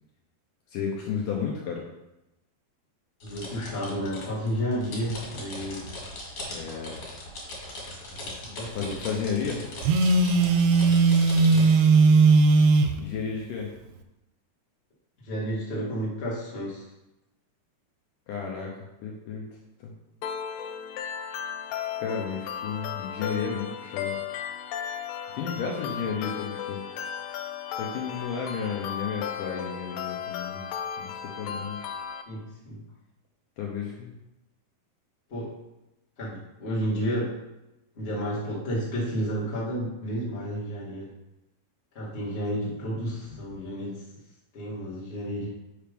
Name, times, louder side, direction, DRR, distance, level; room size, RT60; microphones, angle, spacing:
voice 1, 0.7-1.9 6.5-7.0 8.7-9.7 13.0-13.7 18.3-19.4 19.8-19.9 22.0-24.2 25.3-26.8 27.7-30.6 31.0-31.8 33.6-34.1, left 6 dB, 75° left, -1 dB, 2.1 m, -32 dB
sound 1, 3.2-11.7, left 1 dB, 55° left, 3.0 m, -39 dB
voice 2, 3.2-5.8 8.1-9.0 11.5-11.8 15.2-16.8 32.3-32.8 35.3-35.6 36.2-37.4 37.9-41.1 41.9-44.0 44.5-45.5, equal, 30° left, -6 dB, 1.0 m, -31 dB
Telephone, 9.8-13.0, right 4 dB, 85° right, 2.5 m, -18 dB
sound 2, 20.2-32.2, left 8 dB, 90° left, 1.9 m, -35 dB
5.8 x 5.1 x 5.1 m, 0.94 s
omnidirectional pair, 4.4 m